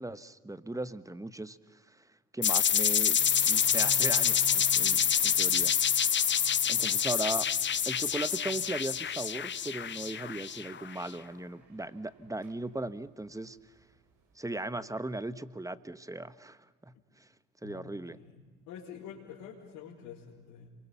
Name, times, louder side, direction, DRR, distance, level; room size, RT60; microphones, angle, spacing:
voice 1, 0.0-1.8 2.3-3.2 3.4-5.7 6.7-7.5 7.9-13.6 14.4-16.6 17.6-18.2, right 2 dB, 10° right, 15 dB, 1.2 m, -37 dB
sound 1, 2.4-10.9, left 8 dB, 35° left, 0.8 m, -27 dB
Japan Tokyo iidabashi Evening Walk Cars Motorcycle Motorbike, 3.2-15.0, right 2 dB, 65° right, 5.2 m, -52 dB
voice 2, 6.7-7.2 17.6-20.7, left 7 dB, 85° left, -5 dB, 4.8 m, -48 dB
26.5 x 23.5 x 7.2 m, 1.3 s
supercardioid pair, 65°, 35 cm